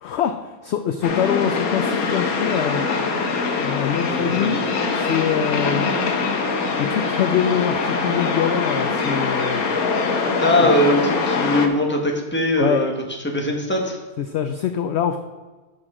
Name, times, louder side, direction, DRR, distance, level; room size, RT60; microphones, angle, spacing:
voice 1, 0.0-2.8 3.6-4.5 4.9-5.9 6.8-9.6 10.6-10.7 12.6-12.9 14.2-15.2, left 8 dB, 65° left, 8 dB, 0.7 m, -24 dB
sound 1, 1.0-11.7, left 4 dB, 85° left, 1.5 m, -23 dB
voice 2, 4.1-4.6 10.4-12.9 13.2-14.0, left 1 dB, 10° left, 0 dB, 1.3 m, -21 dB
12.0 x 6.3 x 3.7 m, 1.3 s
omnidirectional pair, 1.5 m